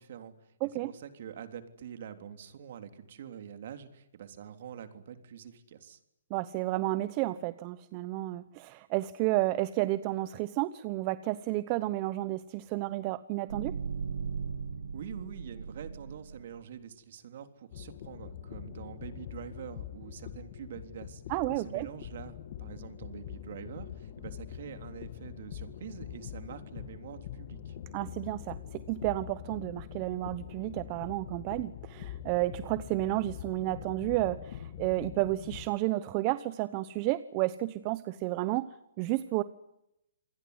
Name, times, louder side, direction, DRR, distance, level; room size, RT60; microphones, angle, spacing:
voice 1, 0.0-6.0 14.9-21.2 21.5-27.8, right 8 dB, 55° right, 8 dB, 3.5 m, -45 dB
voice 2, 6.3-13.8 21.3-21.9 27.9-39.4, right 17 dB, 30° right, 15 dB, 1.0 m, -31 dB
sound 1, 13.5-16.6, right 6 dB, 90° right, 1.3 m, -38 dB
sound 2, 17.7-35.7, left 10 dB, 45° left, 2.2 m, -44 dB
28.0 x 21.0 x 9.7 m, 0.84 s
hypercardioid pair, 150°, 0 cm